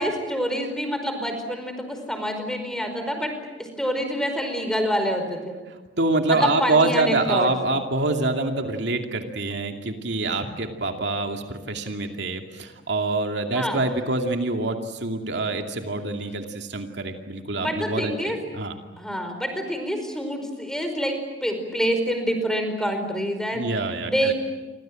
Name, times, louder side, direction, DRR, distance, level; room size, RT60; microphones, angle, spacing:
voice 1, 0.0-3.3 3.6-5.6 6.3-7.5 13.5-13.8 17.6-18.4 19.0-23.6 24.0-24.3, equal, 5° left, 6 dB, 4.9 m, -27 dB
voice 2, 6.0-18.7 23.5-24.3, right 2 dB, 65° right, 4 dB, 2.6 m, -25 dB
29.5 x 25.0 x 7.8 m, 1.2 s
head